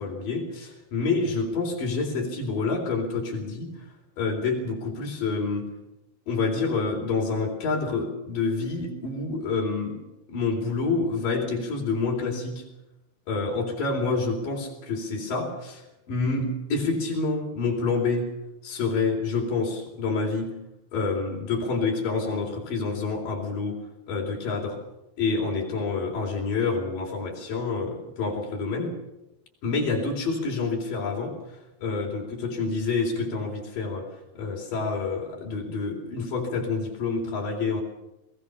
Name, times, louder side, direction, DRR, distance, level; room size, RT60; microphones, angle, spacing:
voice 1, 0.0-3.7 4.2-5.7 6.3-10.0 10.3-12.6 13.3-15.8 16.1-18.3 18.6-20.6 20.9-23.8 24.1-24.8 25.2-29.0 29.6-31.4 31.8-34.1 34.4-37.8, left 4 dB, 75° left, -1 dB, 5.6 m, -28 dB
21.5 x 18.0 x 6.9 m, 0.89 s
omnidirectional pair, 3.9 m